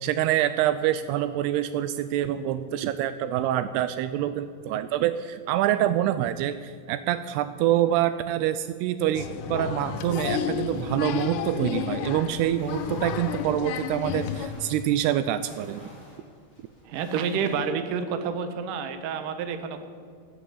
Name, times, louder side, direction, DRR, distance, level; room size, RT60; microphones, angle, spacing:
voice 1, 0.0-15.8, right 12 dB, 85° right, 12 dB, 2.6 m, -26 dB
Applause, 9.1-14.5, left 7 dB, 75° left, 2.0 m, -31 dB
sound 1, 12.5-17.6, left 1 dB, 10° left, 5.0 m, -51 dB
voice 2, 16.9-19.9, right 6 dB, 65° right, 8 dB, 2.5 m, -29 dB
15.5 x 9.8 x 8.9 m, 2.2 s
omnidirectional pair, 4.7 m